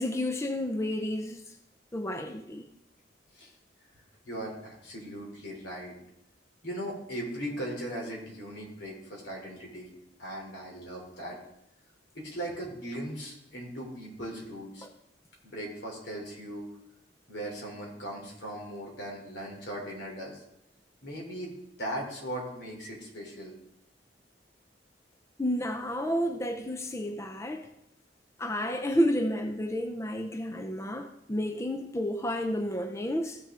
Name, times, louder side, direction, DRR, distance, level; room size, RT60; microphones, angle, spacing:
voice 1, 0.0-1.4 1.9-2.7 14.8-14.9 25.4-27.7 28.4-33.4, equal, 15° left, 6 dB, 0.5 m, -31 dB
voice 2, 4.2-5.9 6.6-9.9 10.2-11.4 12.1-14.9 15.4-16.7 17.3-20.4 21.0-23.5, right 1 dB, 70° left, 0 dB, 3.3 m, -38 dB
15.0 x 6.4 x 3.7 m, 0.81 s
head